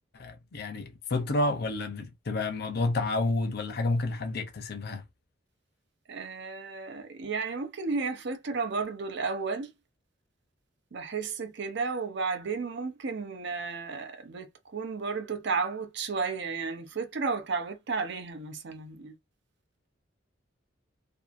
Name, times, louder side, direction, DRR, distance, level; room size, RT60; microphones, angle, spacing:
voice 1, 0.1-5.0, left 2 dB, 55° left, 0.6 m, -30 dB
voice 2, 6.1-9.7 10.9-19.1, right 4 dB, 65° right, 0.6 m, -33 dB
2.7 x 2.5 x 2.4 m
head